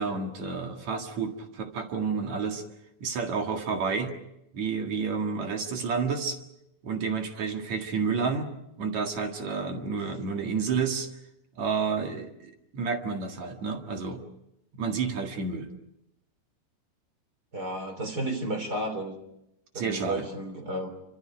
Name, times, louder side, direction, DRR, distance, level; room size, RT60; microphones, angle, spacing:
voice 1, 0.0-2.6 3.0-4.1 4.5-6.4 6.8-8.5 8.8-11.1 11.6-14.2 14.8-15.7 19.7-20.3, right 5 dB, 55° right, 4 dB, 2.9 m, -30 dB
voice 2, 17.5-19.1 19.7-20.9, right 1 dB, 25° right, 6 dB, 3.4 m, -32 dB
28.5 x 26.0 x 5.1 m, 0.82 s
omnidirectional pair, 4.4 m